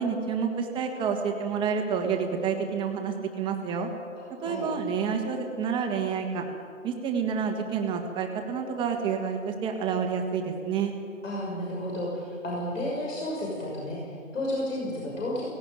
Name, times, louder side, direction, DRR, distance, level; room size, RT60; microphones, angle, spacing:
voice 1, 0.0-3.9 4.4-6.4 6.8-10.9, right 6 dB, 10° right, 3 dB, 1.6 m, -29 dB
voice 2, 11.2-15.5, left 1 dB, 70° left, -3 dB, 6.3 m, -32 dB
17.5 x 17.0 x 9.2 m, 2.4 s
hypercardioid pair, 150°, 40 cm